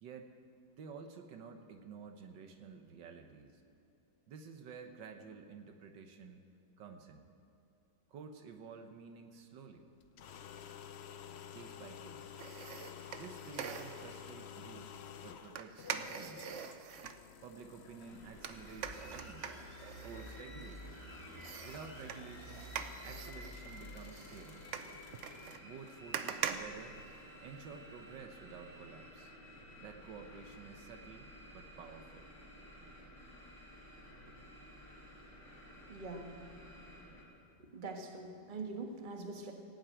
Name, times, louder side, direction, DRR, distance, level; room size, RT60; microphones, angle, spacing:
voice 1, 0.0-0.3 0.8-3.6 4.3-6.4 6.8-7.3 8.1-9.8 11.5-12.4 13.2-16.6 17.4-19.5 20.0-21.0 21.6-22.7 23.0-24.8 25.6-27.0 27.4-29.3 29.8-32.3, right 5 dB, 80° right, 6 dB, 1.7 m, -51 dB
sound 1, 10.0-25.6, left 8 dB, 75° left, 0.6 m, -52 dB
sound 2, 12.4-14.2 15.5-17.2 18.4-21.0 21.4-27.6 28.0-28.1, right 7 dB, 60° right, 0.8 m, -44 dB
sound 3, 18.1-37.2, equal, 30° left, 5.0 m, -52 dB
voice 2, 35.9-36.4 37.6-39.5, right 3 dB, 30° right, 3 dB, 1.4 m, -44 dB
17.0 x 7.9 x 8.9 m, 2.8 s
omnidirectional pair, 1.9 m